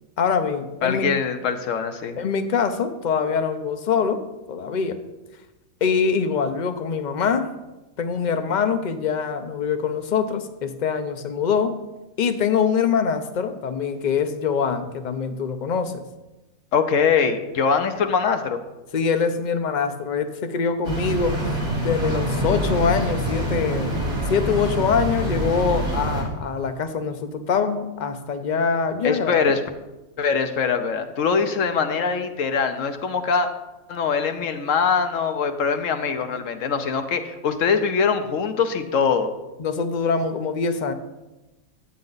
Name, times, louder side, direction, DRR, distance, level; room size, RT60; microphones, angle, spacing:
voice 1, 0.2-1.1 2.2-4.2 4.5-5.0 5.8-7.5 8.0-11.8 12.2-16.0 18.9-21.5 21.8-24.0 24.3-29.5 39.6-40.9, left 6 dB, 45° left, 8 dB, 0.7 m, -24 dB
voice 2, 0.8-2.2 16.7-18.6 29.0-29.6 30.2-33.5 33.9-39.3, left 6 dB, 65° left, 8 dB, 1.1 m, -22 dB
sound 1, 20.8-26.2, equal, 85° right, 2.9 m, -25 dB
11.5 x 8.6 x 4.0 m, 1.0 s
omnidirectional pair, 1.5 m